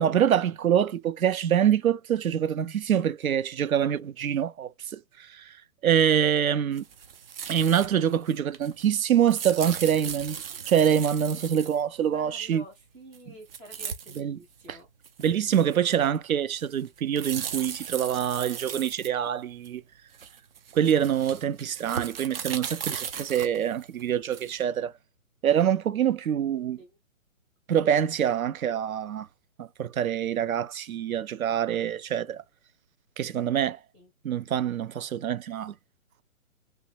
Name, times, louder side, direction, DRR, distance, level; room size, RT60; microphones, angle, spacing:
voice 1, 0.0-5.6 5.8-6.8 7.5-10.4 10.7-12.6 14.2-14.4 14.7-14.8 15.2-19.8 20.7-24.9 25.4-26.8 27.7-29.3 29.6-32.4 33.2-33.8 34.2-35.7, right 9 dB, 90° right, 0.6 m, -25 dB
sound 1, 6.7-7.9 8.1-11.8 13.1-13.2 13.5-14.2 14.6-14.7 15.0-16.2 16.6-19.7 20.1-24.6, right 7 dB, 45° right, 0.7 m, -37 dB
voice 2, 12.0-14.9 26.8-27.0 33.9-34.1, equal, 5° right, 0.5 m, -49 dB
3.1 x 3.1 x 3.2 m
hypercardioid pair, 145°, 41 cm